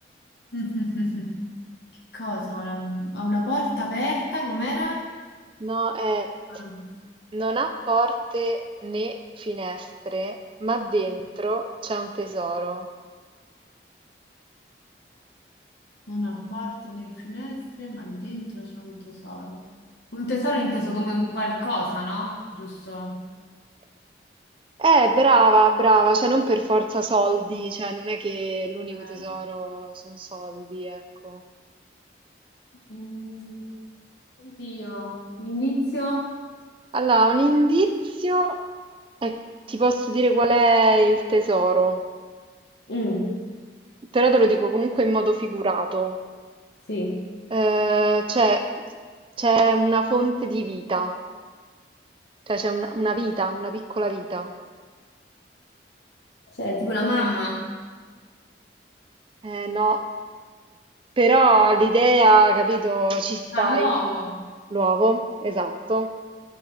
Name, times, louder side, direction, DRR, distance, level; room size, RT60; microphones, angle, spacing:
voice 1, 0.5-1.4 2.1-5.1 6.5-6.9 16.1-19.7 20.1-23.3 28.9-29.4 32.9-33.7 34.4-36.3 42.9-43.4 46.9-47.3 56.6-57.7 63.5-64.4, left 1 dB, 70° left, -4 dB, 1.2 m, -29 dB
voice 2, 5.6-6.3 7.3-12.9 24.8-31.4 36.9-38.6 39.2-39.4 39.7-42.0 44.1-46.2 47.5-48.7 49.4-51.2 52.5-54.5 59.4-60.0 61.2-64.0 64.7-66.1, right 2 dB, 30° right, 6 dB, 0.4 m, -22 dB
13.5 x 5.7 x 3.2 m, 1.5 s
head